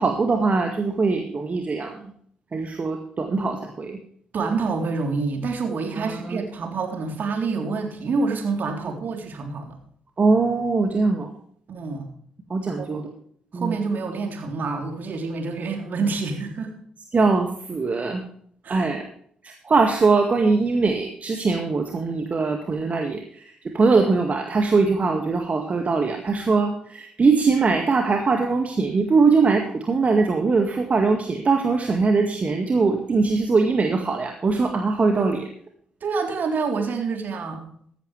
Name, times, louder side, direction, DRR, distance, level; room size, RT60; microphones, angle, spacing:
voice 1, 0.0-2.1 2.5-4.0 5.9-6.4 8.8-8.9 10.2-11.3 12.5-13.1 13.5-13.8 17.1-18.2 18.7-19.0 19.4-35.4, right 4 dB, 40° right, 4 dB, 1.9 m, -22 dB
voice 2, 4.3-9.8 11.7-12.1 12.8-13.0 13.5-16.8 18.6-18.9 36.0-37.6, right 4 dB, 55° right, 4 dB, 3.5 m, -27 dB
15.0 x 11.5 x 3.3 m, 0.62 s
hypercardioid pair, 40°, 4 cm